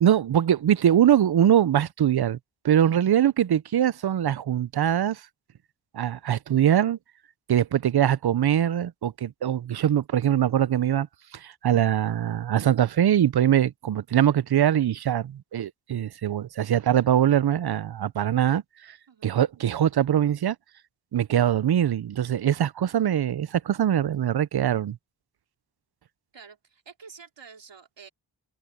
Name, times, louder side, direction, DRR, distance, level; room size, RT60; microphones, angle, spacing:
voice 1, 0.0-2.4 2.6-5.2 5.9-7.0 7.5-11.1 11.3-18.6 18.9-19.0 19.2-20.6 21.1-25.0, right 10 dB, 60° right, 0.6 m, -22 dB
voice 2, 26.3-28.1, right 6 dB, 75° right, 3.7 m, -48 dB
cardioid pair, 55°, 43 cm